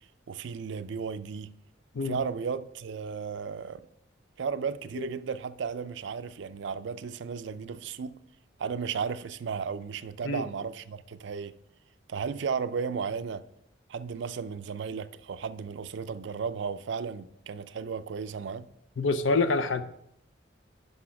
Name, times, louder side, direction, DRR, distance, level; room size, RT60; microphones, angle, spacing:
voice 1, 0.3-1.5 2.0-3.9 4.4-8.2 8.6-11.5 12.1-13.4 13.9-18.7, right 6 dB, 65° right, 0.4 m, -34 dB
voice 2, 19.0-19.8, left 3 dB, 75° left, 0.6 m, -26 dB
6.1 x 5.5 x 5.7 m
head